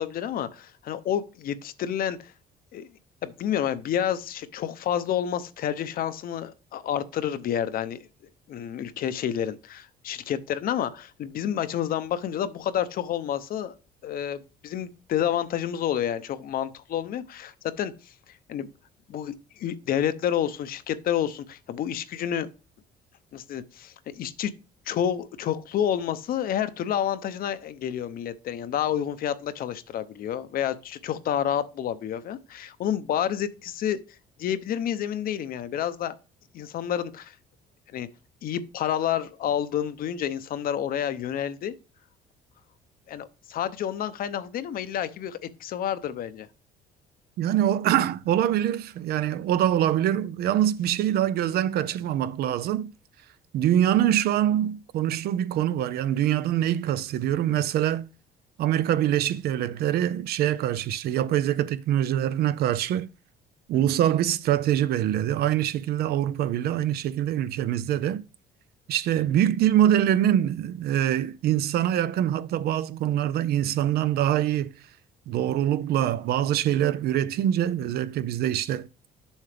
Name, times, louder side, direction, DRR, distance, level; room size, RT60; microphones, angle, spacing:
voice 1, 0.0-2.3 2.7-2.9 3.2-8.0 8.5-13.7 14.0-18.1 18.5-18.7 19.1-22.5 23.3-24.5 24.9-34.0 34.4-36.2 36.5-37.3 37.9-38.1 38.4-41.7 43.1-46.5 63.7-63.8, left 10 dB, 60° left, 0.7 m, -29 dB
voice 2, 47.4-52.9 53.5-58.0 58.6-63.1 63.7-68.2 68.9-74.7 75.3-78.9, right 11 dB, 70° right, 0.5 m, -24 dB
7.3 x 5.5 x 3.4 m
cardioid pair, 110°, 17 cm